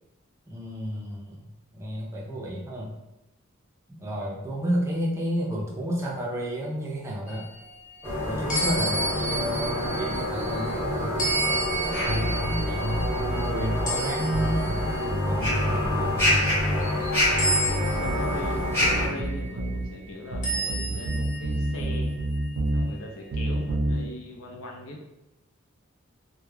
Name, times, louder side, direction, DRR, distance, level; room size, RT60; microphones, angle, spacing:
voice 1, 0.5-3.0 3.9-7.5 8.2-16.6 19.0-19.1, right 1 dB, 15° right, -4 dB, 0.4 m, -32 dB
sound 1, 7.3-10.7 11.2-15.1 15.6-15.9 17.4-19.5 20.4-22.4, right 2 dB, 40° left, 0.8 m, -32 dB
sound 2, 8.0-19.1, left 1 dB, 10° left, 0.9 m, -28 dB
voice 2, 8.7-9.6 17.6-22.1 22.7-25.0, left 1 dB, 75° left, 0 dB, 0.5 m, -39 dB
sound 3, 12.1-13.9 14.3-16.9 17.3-19.9 20.3-22.8 23.3-24.0, equal, 90° right, 0.5 m, -28 dB
2.3 x 2.1 x 3.1 m, 0.93 s
head